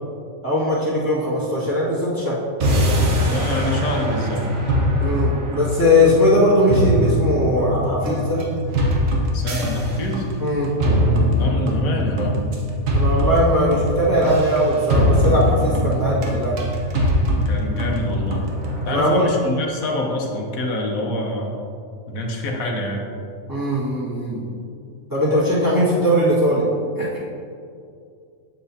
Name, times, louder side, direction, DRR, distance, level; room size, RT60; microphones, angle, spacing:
voice 1, 0.4-2.4 5.0-8.4 10.4-10.7 12.9-16.6 18.9-19.2 23.5-24.4 25.1-26.7 26.9-27.2, equal, 15° right, -9 dB, 1.6 m, -19 dB
sound 1, 2.6-19.0, equal, 75° right, 1.3 m, -22 dB
voice 2, 3.2-4.4 9.3-10.3 11.4-12.4 17.3-18.4 18.9-21.6 22.1-23.1, left 1 dB, 80° left, 0 dB, 1.3 m, -26 dB
7.5 x 6.9 x 2.8 m, 2.4 s
omnidirectional pair, 1.4 m